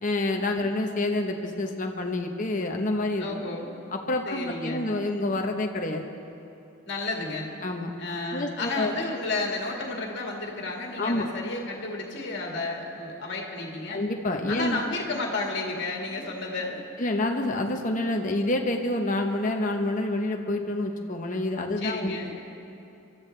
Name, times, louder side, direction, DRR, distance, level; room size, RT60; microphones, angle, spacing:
voice 1, 0.0-3.3 3.9-6.0 7.6-7.9 8.3-8.9 11.0-11.3 13.9-14.9 17.0-22.1, left 2 dB, 35° left, 3 dB, 0.9 m, -28 dB
voice 2, 3.2-3.7 4.3-4.8 6.9-7.5 8.0-14.0 14.5-16.8 21.8-22.3, left 3 dB, 50° left, 0 dB, 1.9 m, -32 dB
25.0 x 13.5 x 3.3 m, 2.7 s
head